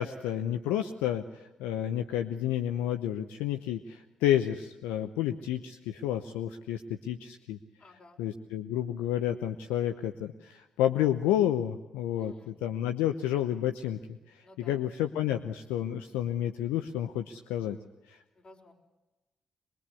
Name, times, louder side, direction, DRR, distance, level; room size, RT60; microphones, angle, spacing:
voice 1, 0.0-7.6 8.2-14.0 14.3-17.8 18.1-18.2, left 11 dB, 75° left, 8 dB, 0.8 m, -30 dB
voice 2, 7.8-8.2 12.2-12.5 14.4-14.8 18.3-18.7, left 2 dB, 40° left, 2 dB, 6.0 m, -55 dB
23.5 x 22.0 x 8.4 m, 1.0 s
hypercardioid pair, 40°, 3 cm